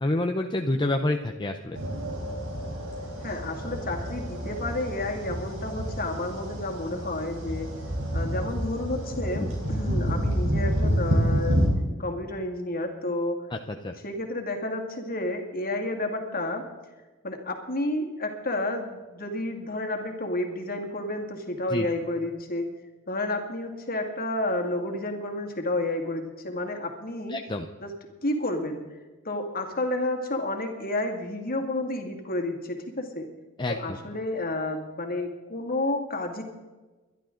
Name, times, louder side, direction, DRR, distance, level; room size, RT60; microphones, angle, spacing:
voice 1, 0.0-1.8 13.5-13.9 21.7-21.9 27.3-27.6 33.6-33.8, left 2 dB, 20° left, 4 dB, 0.7 m, -28 dB
sound 1, 1.7-11.7, equal, 65° right, 4.1 m, -29 dB
voice 2, 3.2-7.7 8.1-11.6 12.0-13.4 14.0-16.6 17.2-22.7 23.1-27.4 27.8-27.9 28.2-29.0 29.2-33.3 33.7-36.4, left 2 dB, 45° left, 3 dB, 2.2 m, -31 dB
22.5 x 11.5 x 3.9 m, 1.2 s
head